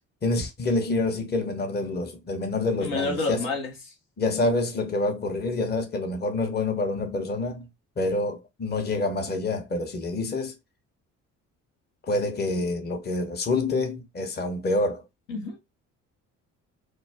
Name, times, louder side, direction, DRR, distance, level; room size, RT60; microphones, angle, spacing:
voice 1, 0.2-3.5 4.2-7.7 8.0-10.5 12.1-15.0, left 2 dB, 25° left, 0.8 m, -27 dB
voice 2, 2.8-3.9 15.3-15.6, left 3 dB, 75° left, 0.9 m, -29 dB
2.3 x 2.1 x 3.3 m
hypercardioid pair, 50°, 40 cm